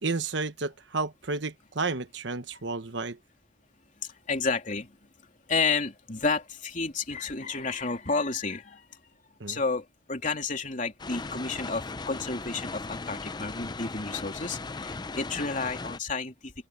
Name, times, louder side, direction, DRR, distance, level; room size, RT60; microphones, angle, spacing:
voice 1, 0.0-3.2 9.4-9.6, right 3 dB, 60° right, 1.2 m, -31 dB
voice 2, 4.0-5.0 5.5-9.0 9.5-16.5, left 4 dB, 40° left, 3.2 m, -31 dB
sound 1, 11.0-16.0, left 3 dB, 20° left, 0.6 m, -37 dB
open air
head